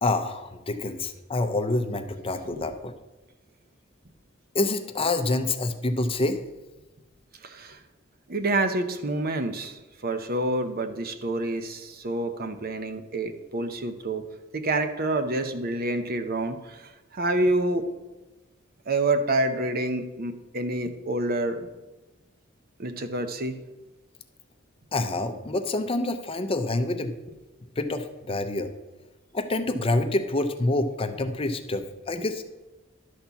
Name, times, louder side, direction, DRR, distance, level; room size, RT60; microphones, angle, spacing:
voice 1, 0.0-2.9 4.5-6.4 24.9-27.1 27.8-28.7 29.3-32.4, left 2 dB, 30° left, 8 dB, 0.6 m, -27 dB
voice 2, 7.4-7.8 8.3-14.2 14.5-16.8 17.1-17.8 18.9-21.7 22.8-23.6, right 2 dB, 50° right, 8 dB, 0.8 m, -27 dB
11.5 x 4.4 x 6.9 m, 1.1 s
head